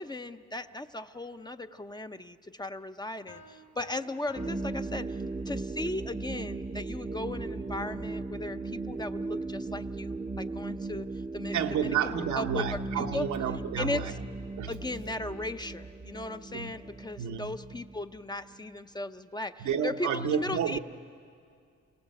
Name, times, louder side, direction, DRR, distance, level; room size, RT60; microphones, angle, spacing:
voice 1, 0.0-13.3 13.8-14.2 14.7-20.8, left 2 dB, 15° left, 0.8 m, -37 dB
sound 1, 3.3-5.7, left 2 dB, 80° left, 3.0 m, -53 dB
sound 2, 4.3-18.7, right 3 dB, 20° right, 0.8 m, -37 dB
voice 2, 11.5-14.1 14.6-14.8 16.5-16.7 17.2-17.5 19.6-20.8, right 7 dB, 75° right, 1.2 m, -30 dB
29.0 x 17.5 x 7.7 m
cardioid pair, 75°, 29 cm